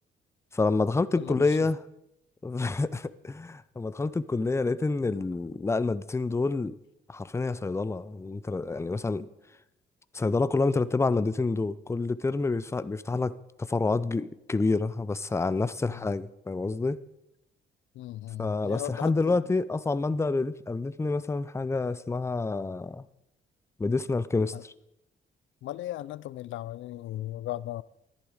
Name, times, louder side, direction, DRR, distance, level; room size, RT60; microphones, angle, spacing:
voice 1, 0.5-1.8 2.4-6.8 7.1-9.3 10.1-13.3 13.7-17.0 18.4-23.0 23.8-24.7, left 3 dB, 15° left, 0.5 m, -28 dB
voice 2, 1.2-1.6 15.9-16.1 17.9-19.4 24.5-24.6 25.6-27.8, left 14 dB, 75° left, 0.4 m, -37 dB
13.5 x 11.0 x 5.0 m
cardioid pair, 90°, 20 cm